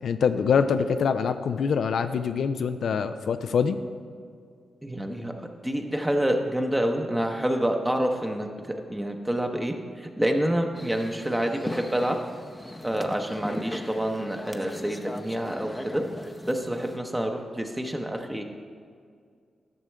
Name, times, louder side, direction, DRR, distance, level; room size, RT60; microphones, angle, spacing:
voice 1, 0.0-3.8, left 6 dB, 75° left, 10 dB, 0.3 m, -24 dB
voice 2, 4.8-12.2 12.8-16.0 16.4-18.4, right 1 dB, 15° right, 3 dB, 0.8 m, -28 dB
sound 1, 10.7-17.0, left 1 dB, 20° left, 0.6 m, -38 dB
10.5 x 6.0 x 3.3 m, 2.2 s
supercardioid pair, 40°, 0 cm